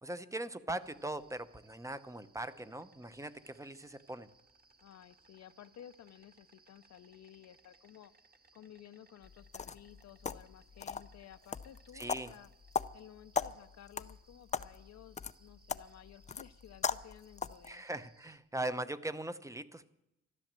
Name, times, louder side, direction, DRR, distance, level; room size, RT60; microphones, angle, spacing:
voice 1, 0.0-4.3 11.9-12.3 17.7-19.9, right 2 dB, 10° right, 12 dB, 0.8 m, -40 dB
Insect, 0.8-18.4, right 3 dB, 30° right, 1.6 m, -67 dB
voice 2, 4.8-8.1 8.5-12.5 12.9-17.9, left 11 dB, 60° left, 11 dB, 0.7 m, -55 dB
sound 1, 9.2-17.7, left 6 dB, 25° left, 0.5 m, -40 dB
13.5 x 11.5 x 7.5 m, 0.87 s
cardioid pair, 90°, 30 cm